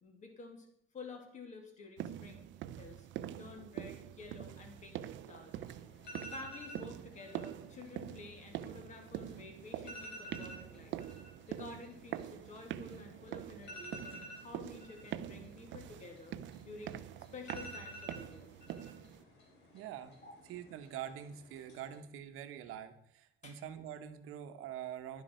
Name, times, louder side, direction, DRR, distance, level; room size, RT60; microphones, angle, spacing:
voice 1, 0.0-0.7 0.9-2.5 2.8-3.1 3.4-5.6 6.3-11.0 11.5-16.4 16.7-16.9 17.3-18.5 20.2-20.3 23.4-23.6, left 3 dB, 35° left, 3 dB, 2.3 m, -51 dB
sound 1, 2.0-19.2, right 11 dB, 60° right, 0.6 m, -45 dB
sound 2, 5.5-22.0, left 1 dB, 55° left, 3.5 m, -53 dB
voice 2, 19.7-20.2 20.5-25.2, right 10 dB, 85° right, 8 dB, 1.2 m, -45 dB
11.5 x 10.5 x 4.4 m, 0.69 s
cardioid pair, 165°, 21 cm